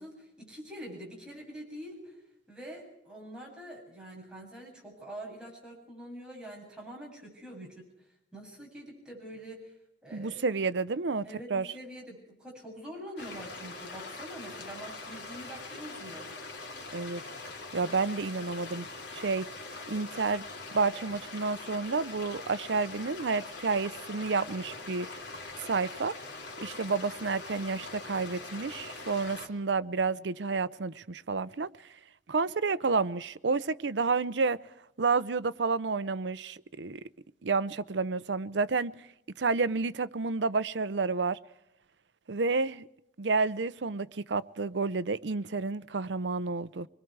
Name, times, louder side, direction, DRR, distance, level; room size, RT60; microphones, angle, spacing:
voice 1, 0.0-2.2 2.5-7.8 8.3-9.7 10.0-10.5 11.2-16.3, right 1 dB, 5° right, 7.7 m, -45 dB
voice 2, 10.1-11.7 16.9-17.2 17.7-18.9 19.1-19.5 19.9-20.4 20.7-25.1 25.6-26.1 26.6-31.7 32.3-34.6 35.0-37.0 37.4-38.9 39.4-41.4 42.3-42.9 43.2-46.9, right 4 dB, 85° right, 0.7 m, -30 dB
sound 1, 13.2-29.5, left 3 dB, 90° left, 3.0 m, -43 dB
25.5 x 22.0 x 4.7 m
head